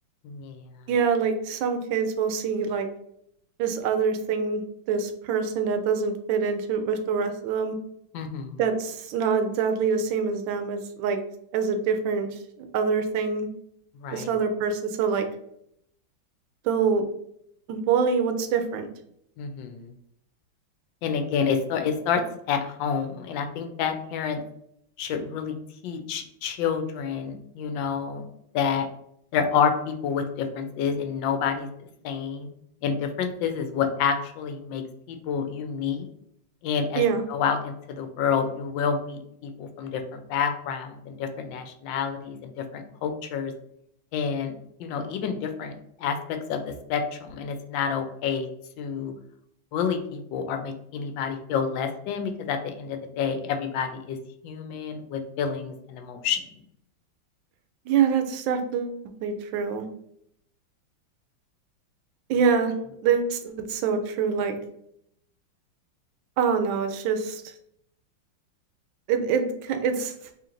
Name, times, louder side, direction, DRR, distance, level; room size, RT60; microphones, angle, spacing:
voice 1, 0.2-0.7 8.1-8.6 14.0-14.3 19.4-19.9 21.0-24.4 25.0-25.6 25.8-28.2 28.5-28.9 29.3-31.7 32.0-32.5 32.8-36.1 36.6-37.0 37.3-43.5 44.1-44.5 44.8-45.7 46.0-48.5 48.8-49.1 49.7-54.2 54.4-56.4, left 6 dB, 75° left, 7 dB, 1.3 m, -28 dB
voice 2, 0.9-2.9 3.6-7.8 8.6-11.2 11.5-12.3 12.6-13.5 14.1-15.3 16.6-17.1 17.7-18.9 37.0-37.2 57.9-59.8 62.3-62.7 63.0-64.6 66.4-67.4 69.1-70.1, right 6 dB, 80° right, 7 dB, 1.3 m, -25 dB
3.1 x 2.9 x 3.7 m, 0.73 s
omnidirectional pair, 2.1 m